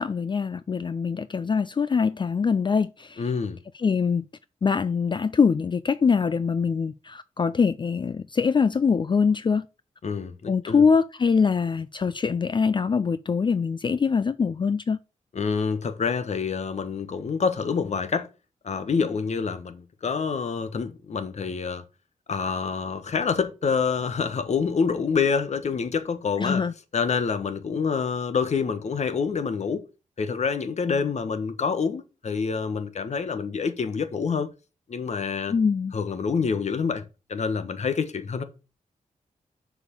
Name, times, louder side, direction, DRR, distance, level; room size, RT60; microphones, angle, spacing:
voice 1, 0.0-3.2 3.8-4.3 4.6-9.6 10.5-15.0 26.4-26.7 35.5-35.9, left 5 dB, 35° left, 0.4 m, -23 dB
voice 2, 3.2-3.6 10.0-10.8 15.3-18.3 18.6-21.8 22.3-26.6 26.9-29.8 30.2-34.5 34.9-35.6 35.9-38.4, left 5 dB, 55° left, 1.3 m, -27 dB
6.5 x 5.0 x 6.5 m
cardioid pair, 75°, 13 cm